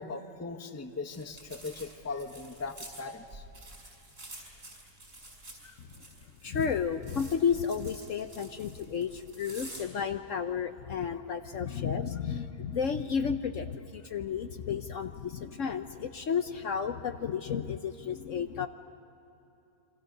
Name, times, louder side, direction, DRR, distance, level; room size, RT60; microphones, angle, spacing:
voice 1, 0.0-3.4 5.6-6.0 11.7-11.8, left 4 dB, 10° left, 6 dB, 0.9 m, -40 dB
sound 1, 1.1-9.9, right 1 dB, 55° right, 5.7 m, -49 dB
voice 2, 6.4-18.7, left 7 dB, 60° left, 8 dB, 1.1 m, -32 dB
28.0 x 25.0 x 6.7 m, 2.9 s
omnidirectional pair, 1.7 m